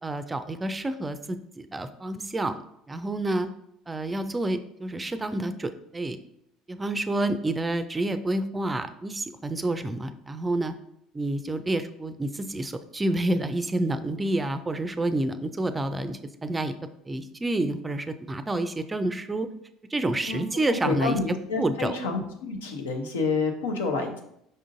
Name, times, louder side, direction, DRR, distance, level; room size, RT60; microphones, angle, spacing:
voice 1, 0.0-2.6 2.9-3.5 3.9-6.2 6.7-10.7 11.1-16.8 17.1-19.5 19.9-22.0, right 1 dB, 20° right, 10 dB, 0.4 m, -29 dB
voice 2, 20.8-24.2, left 4 dB, 80° left, 3 dB, 0.6 m, -28 dB
5.4 x 3.7 x 2.6 m, 0.75 s
hypercardioid pair, 65°, 0 cm